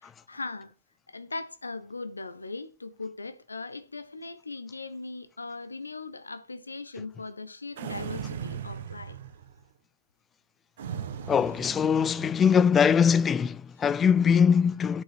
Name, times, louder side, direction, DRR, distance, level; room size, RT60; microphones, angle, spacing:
voice 1, 0.0-0.7 1.1-9.2, left 3 dB, 90° left, 1.0 m, -39 dB
sound 1, 7.8-9.6 10.8-12.6, right 8 dB, 60° right, 1.3 m, -38 dB
voice 2, 11.3-15.0, left 7 dB, 20° left, 0.4 m, -22 dB
8.5 x 5.4 x 6.0 m
figure-of-eight pair, 115°, 0 cm